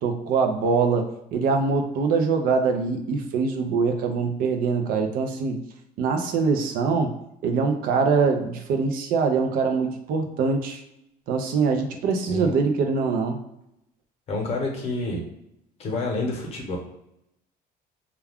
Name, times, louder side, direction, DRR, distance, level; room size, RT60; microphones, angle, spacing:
voice 1, 0.0-5.6 6.0-7.1 7.4-10.8 11.3-13.4, right 4 dB, 60° right, 5 dB, 0.5 m, -23 dB
voice 2, 14.3-15.2 15.8-16.8, left 2 dB, 40° left, 1 dB, 0.9 m, -28 dB
2.2 x 2.2 x 3.4 m, 0.80 s
cardioid pair, 150°, 17 cm